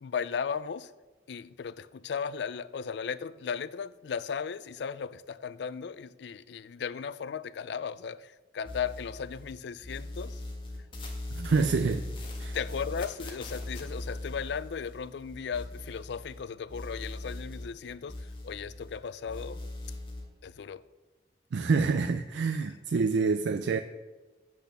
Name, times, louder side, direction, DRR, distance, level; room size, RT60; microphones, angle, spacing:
voice 1, 0.0-0.9 1.3-10.4 12.5-19.6 20.4-20.8 22.6-22.8, left 6 dB, 75° left, 0.4 m, -36 dB
sound 1, 8.6-9.5 9.8-16.4 16.7-19.0 19.2-20.2, left 1 dB, 30° left, 1.5 m, -40 dB
voice 2, 11.3-12.1 12.4-12.6 21.5-23.8, right 4 dB, 80° right, 0.4 m, -27 dB
8.4 x 6.3 x 6.8 m
head